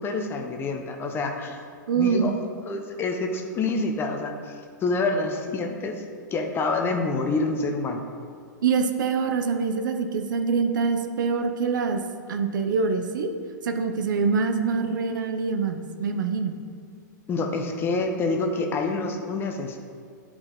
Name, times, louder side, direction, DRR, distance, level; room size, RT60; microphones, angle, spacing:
voice 1, 0.0-1.6 1.9-2.4 2.7-6.0 6.3-8.1 17.3-19.8, left 3 dB, 20° left, 4 dB, 0.7 m, -27 dB
voice 2, 1.9-2.3 8.6-12.0 12.3-13.3 13.6-16.6, right 5 dB, 75° right, 6 dB, 0.7 m, -25 dB
9.6 x 4.7 x 3.9 m, 2.1 s
hypercardioid pair, 130°, 10 cm